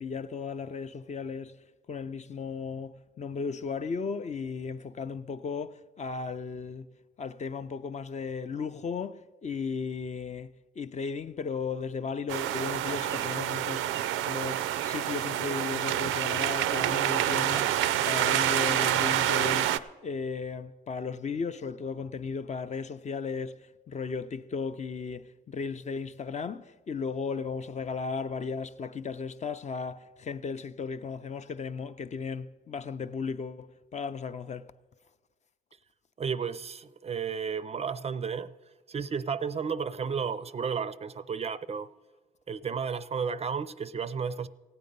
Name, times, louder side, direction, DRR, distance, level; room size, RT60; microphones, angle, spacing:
voice 1, 0.0-1.5 1.9-6.9 7.2-10.5 10.8-13.9 14.2-19.7 20.0-34.7, left 5 dB, 35° left, 0.5 m, -35 dB
sound 1, 12.3-19.8, right 12 dB, 90° right, 0.5 m, -27 dB
voice 2, 36.2-38.5 38.9-41.9 42.5-44.5, right 6 dB, 30° right, 0.4 m, -33 dB
15.5 x 8.8 x 5.3 m
cardioid pair, 90°, 20 cm